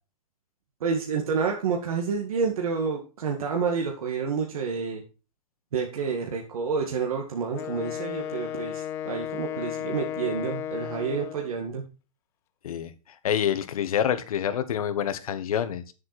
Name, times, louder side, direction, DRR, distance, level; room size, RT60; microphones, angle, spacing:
voice 1, 0.8-5.0 5.7-11.9, right 5 dB, 90° right, 2.1 m, -29 dB
Wind instrument woodwind instrument, 7.5-11.6, left 10 dB, 15° left, 0.4 m, -34 dB
voice 2, 13.2-15.9, left 9 dB, 85° left, 1.4 m, -27 dB
9.6 x 7.5 x 4.3 m
supercardioid pair, 170°, 18 cm